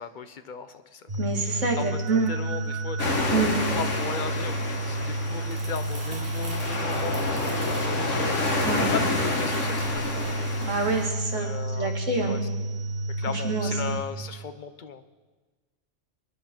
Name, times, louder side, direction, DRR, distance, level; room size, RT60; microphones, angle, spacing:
voice 1, 0.0-1.1 1.8-2.0 2.3-3.3 3.8-8.6 8.9-10.5 11.3-11.9 12.2-12.8 13.2-15.0, left 6 dB, 45° left, 10 dB, 0.9 m, -37 dB
sound 1, 1.1-14.0, right 1 dB, 35° right, 1.5 m, -31 dB
voice 2, 1.2-2.3 3.3-3.6 8.6-8.9 10.6-11.5 11.8-12.4 13.3-13.7, right 3 dB, 75° right, 2 dB, 2.4 m, -26 dB
sound 2, 3.0-11.1, left 3 dB, 75° left, 2.0 m, -29 dB
Crumpling crinkling, 5.2-11.6 11.9-12.2, right 1 dB, 55° right, 2.8 m, -44 dB
25.5 x 10.5 x 4.5 m, 1.3 s
omnidirectional pair, 1.3 m